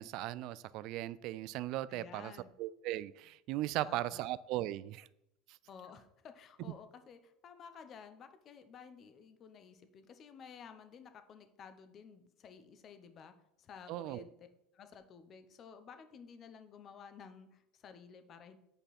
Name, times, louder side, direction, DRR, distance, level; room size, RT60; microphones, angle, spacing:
voice 1, 0.0-2.3 2.6-5.1 13.9-14.2, right 15 dB, 60° right, 19 dB, 0.3 m, -38 dB
voice 2, 1.9-2.6 3.8-4.3 5.7-14.5 14.7-18.6, left 6 dB, 40° left, 9 dB, 0.9 m, -54 dB
8.5 x 5.3 x 4.2 m, 0.80 s
supercardioid pair, 120°, 0 cm